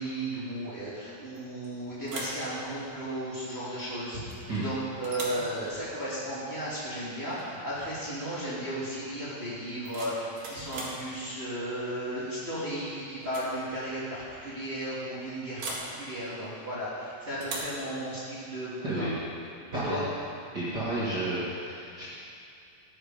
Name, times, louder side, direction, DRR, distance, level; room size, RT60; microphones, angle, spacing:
voice 1, 0.0-19.1 19.8-20.0, right 1 dB, 15° right, -10 dB, 2.9 m, -35 dB
sound 1, 1.4-1.7 2.0-2.5 4.3-4.7 5.0-5.5 7.3-7.5 7.8-8.2 9.6-11.0 12.5-12.8 13.2-13.5 13.8-13.9 15.6-15.9 17.4-17.8, right 2 dB, 65° right, 3.5 m, -39 dB
voice 2, 20.5-22.1, right 2 dB, 35° right, -10 dB, 2.2 m, -31 dB
15.5 x 9.7 x 5.2 m, 2.5 s
omnidirectional pair, 4.2 m